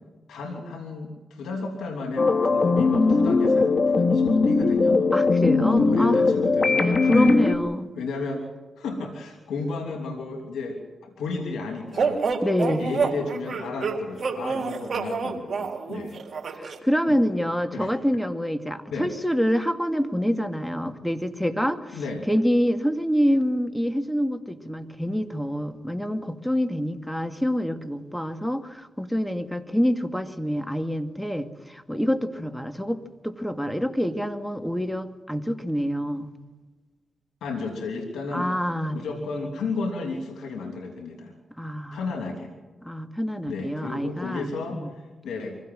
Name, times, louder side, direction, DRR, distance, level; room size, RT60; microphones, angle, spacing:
voice 1, 0.3-5.0 5.7-7.4 8.0-8.4 8.8-12.2 12.6-16.2 17.1-17.2 17.7-17.9 18.9-19.1 21.9-22.3 37.4-38.5 38.9-41.3 41.9-42.5 43.5-45.6, left 3 dB, 85° left, 2 dB, 3.1 m, -33 dB
sound 1, 2.2-7.6, left 3 dB, 45° left, 2.6 m, -20 dB
voice 2, 5.1-6.3 6.7-7.9 12.4-12.9 16.5-22.0 22.3-36.3 38.3-39.5 41.6-42.1 42.8-44.9, equal, 5° left, 8 dB, 2.4 m, -26 dB
sound 2, 12.0-16.8, right 5 dB, 60° right, 3.7 m, -27 dB
24.5 x 16.5 x 7.8 m, 1.3 s
supercardioid pair, 45°, 0 cm